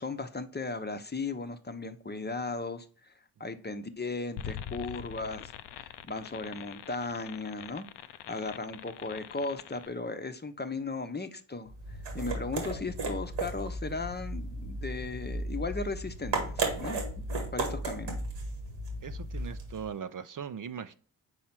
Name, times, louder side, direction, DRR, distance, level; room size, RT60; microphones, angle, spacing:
voice 1, 0.0-3.1 3.4-17.0 17.5-18.2, left 3 dB, 25° left, 9 dB, 0.8 m, -37 dB
sound 1, 4.4-9.9, left 10 dB, 75° left, 0.5 m, -43 dB
sound 2, 11.7-19.9, right 2 dB, 85° right, 1.8 m, -35 dB
voice 2, 19.0-20.9, right 7 dB, 50° right, 12 dB, 0.6 m, -40 dB
4.8 x 4.2 x 5.9 m, 0.43 s
supercardioid pair, 45°, 42 cm